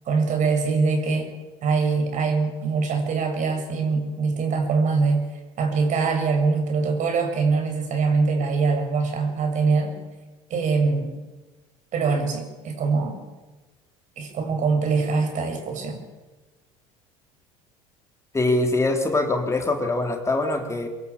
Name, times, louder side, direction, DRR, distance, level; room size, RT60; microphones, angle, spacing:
voice 1, 0.1-1.3 1.6-5.2 5.6-10.0 10.5-11.2 11.9-13.2 14.2-16.0, right 4 dB, 50° right, 5 dB, 7.6 m, -23 dB
voice 2, 18.3-20.9, left 2 dB, 15° left, 3 dB, 4.0 m, -23 dB
24.5 x 22.5 x 8.9 m, 1.2 s
hypercardioid pair, 75°, 16 cm